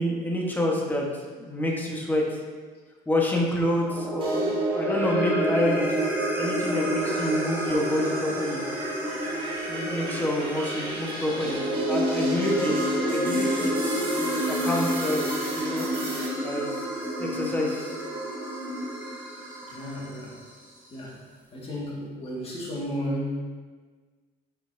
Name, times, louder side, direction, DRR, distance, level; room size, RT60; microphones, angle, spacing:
voice 1, 0.0-2.4 3.1-6.1 6.4-8.6 9.7-12.8 13.0-13.9 14.2-15.9 16.4-18.0, left 1 dB, 10° left, -2 dB, 1.2 m, -28 dB
sound 1, 3.9-20.3, equal, 10° right, 1.2 m, -29 dB
sound 2, 4.2-5.1 5.5-16.3, right 1 dB, 30° right, 1.9 m, -38 dB
voice 2, 19.7-20.4 20.9-21.2 21.5-23.4, equal, 35° left, -4 dB, 1.9 m, -33 dB
7.4 x 5.4 x 2.7 m, 1.5 s
cardioid pair, 110°, 17 cm